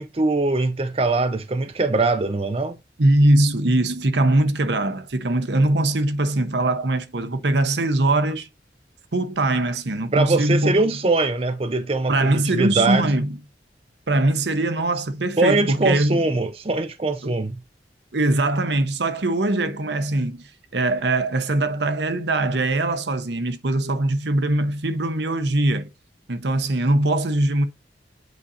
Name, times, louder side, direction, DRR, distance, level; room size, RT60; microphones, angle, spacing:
voice 1, 0.0-2.8 10.1-13.2 15.4-17.6, right 2 dB, 30° right, 0.6 m, -22 dB
voice 2, 3.0-8.5 9.1-10.7 12.1-13.4 14.1-16.2 17.2-17.3 18.1-20.5 20.7-25.9 26.3-27.7, right 2 dB, 75° right, 0.9 m, -21 dB
8.1 x 4.9 x 2.6 m
head